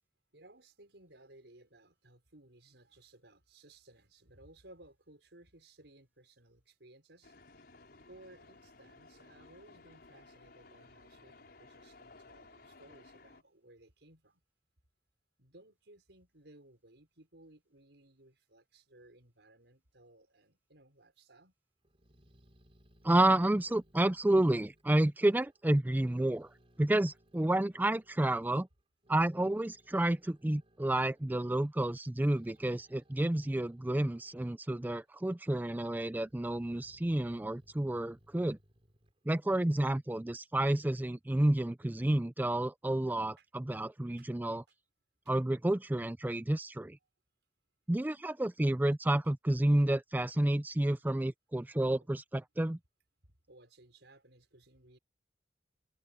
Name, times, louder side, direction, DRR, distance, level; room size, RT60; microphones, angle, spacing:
voice 1, 0.3-7.4 8.1-14.4 15.4-21.5 43.4-43.5 44.2-44.3 45.3-45.4 53.5-55.0, right 1 dB, 80° right, 5.5 m, -59 dB
sound 1, 7.2-13.4, left 3 dB, 60° left, 5.3 m, -57 dB
Growling, 21.8-25.6 25.9-28.2 28.8-34.6 35.0-35.7 36.1-39.9, equal, 35° right, 3.8 m, -66 dB
voice 2, 23.0-26.5 26.8-28.7 29.1-38.6 39.3-44.6 45.3-47.0 47.9-52.8, right 1 dB, 10° right, 0.4 m, -30 dB
head